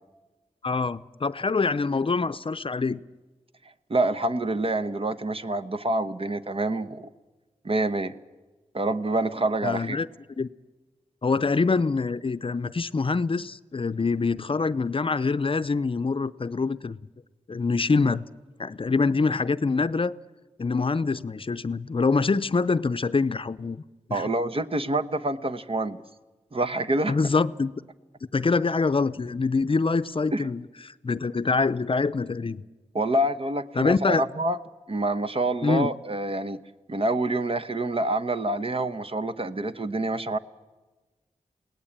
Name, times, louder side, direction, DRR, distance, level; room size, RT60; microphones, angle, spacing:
voice 1, 0.6-3.0 9.6-10.1 10.4-10.5 11.2-17.0 17.5-18.3 18.6-20.1 20.6-23.8 24.1-24.3 27.1-27.7 28.3-32.6 33.8-34.2 35.6-35.9, left 4 dB, 45° left, 0.6 m, -25 dB
voice 2, 3.9-7.1 7.6-8.1 8.7-10.0 24.1-26.0 26.5-27.2 30.3-30.4 32.9-34.6 34.9-36.6 36.9-40.4, right 2 dB, 45° right, 1.0 m, -27 dB
21.5 x 18.0 x 8.7 m
cardioid pair, 50°, 13 cm